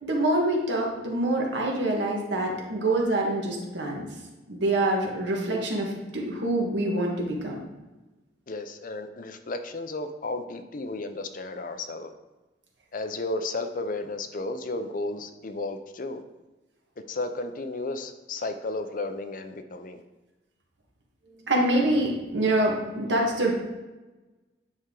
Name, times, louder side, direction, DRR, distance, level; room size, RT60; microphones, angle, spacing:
voice 1, 0.0-4.1 4.5-7.6 21.5-23.5, right 1 dB, 85° right, -1 dB, 1.7 m, -25 dB
voice 2, 8.5-12.1 12.9-16.2 17.1-20.0, left 2 dB, 50° left, 8 dB, 0.6 m, -33 dB
9.5 x 4.4 x 3.8 m, 1.1 s
head